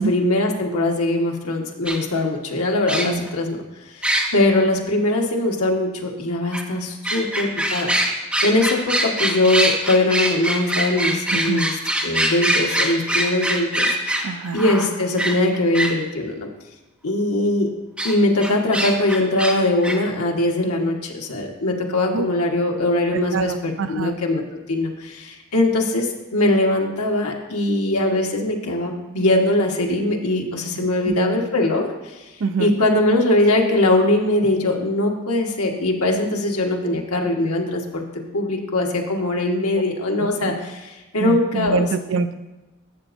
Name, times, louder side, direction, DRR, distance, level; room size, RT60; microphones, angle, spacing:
voice 1, 0.0-3.6 3.9-7.9 8.4-11.7 12.0-14.2 14.5-16.5 17.0-17.7 18.0-24.4 24.7-32.2 32.6-38.0 38.3-41.9, left 1 dB, 90° left, 1 dB, 1.4 m, -21 dB
sound 1, 1.9-2.0 2.9-3.3 4.0-4.3 6.5-6.6 7.0-15.9 18.0-18.1 18.4-19.5 19.8-20.0, right 1 dB, 5° right, 0.9 m, -22 dB
voice 2, 11.3-11.6 14.2-14.6 22.1-22.3 23.3-24.1 30.8-31.1 32.4-32.7 39.7-39.8 40.2-40.5 41.2-42.3, right 4 dB, 60° right, 10 dB, 0.5 m, -25 dB
13.0 x 8.0 x 2.6 m, 1.1 s
head